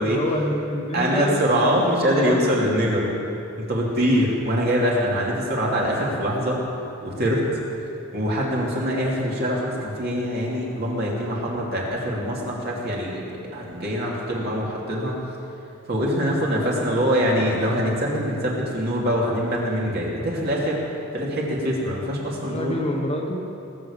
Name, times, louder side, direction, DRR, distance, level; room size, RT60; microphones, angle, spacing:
voice 1, 0.0-1.4 1.6-2.4 16.6-17.1 22.4-23.5, left 1 dB, 30° left, 1 dB, 1.4 m, -28 dB
voice 2, 0.9-3.1 3.6-6.6 7.0-7.5 8.1-15.1 15.9-20.8 21.1-22.7, equal, 50° right, -3 dB, 2.8 m, -23 dB
20.0 x 7.0 x 7.2 m, 2.9 s
head